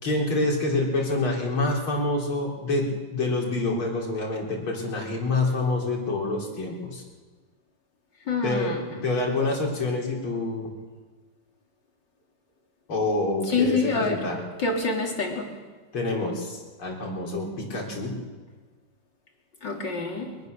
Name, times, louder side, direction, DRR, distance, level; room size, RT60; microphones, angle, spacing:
voice 1, 0.0-7.0 8.4-8.7 9.0-10.7 12.9-14.4 15.9-18.2, left 2 dB, 85° left, -1 dB, 4.7 m, -27 dB
voice 2, 8.3-8.8 13.5-14.2 14.6-15.5 19.6-20.3, left 4 dB, 60° left, 1 dB, 3.9 m, -26 dB
23.0 x 21.5 x 6.7 m, 1.4 s
omnidirectional pair, 2.2 m